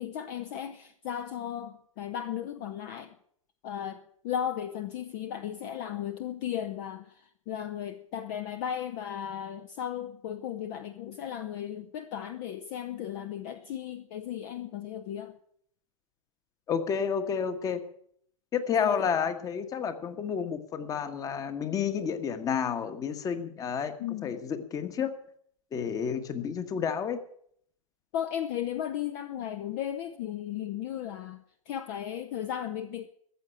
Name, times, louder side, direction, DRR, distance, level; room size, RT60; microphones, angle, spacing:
voice 1, 0.0-3.1 3.6-7.1 7.5-15.4 18.8-19.1 24.0-24.3 28.1-31.4 31.7-33.1, left 10 dB, 40° left, 9 dB, 0.9 m, -35 dB
voice 2, 16.7-17.8 18.5-25.1 25.7-27.2, left 7 dB, 20° left, 10 dB, 1.4 m, -30 dB
14.0 x 7.5 x 9.8 m, 0.65 s
figure-of-eight pair, 115°, 18 cm